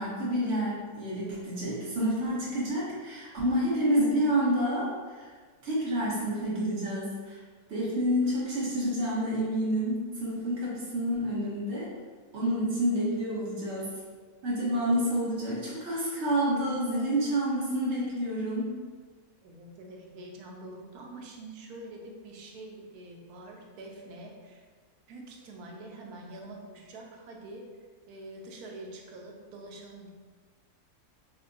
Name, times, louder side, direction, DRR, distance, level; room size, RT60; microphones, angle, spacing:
voice 1, 0.0-5.3 5.6-7.4 7.7-11.9 12.3-13.9 14.4-18.7, equal, 50° right, -7 dB, 1.2 m, -29 dB
voice 2, 19.4-24.6 25.1-27.7 28.1-30.1, right 2 dB, 80° right, 1 dB, 1.1 m, -45 dB
4.5 x 2.1 x 2.5 m, 1.5 s
omnidirectional pair, 1.6 m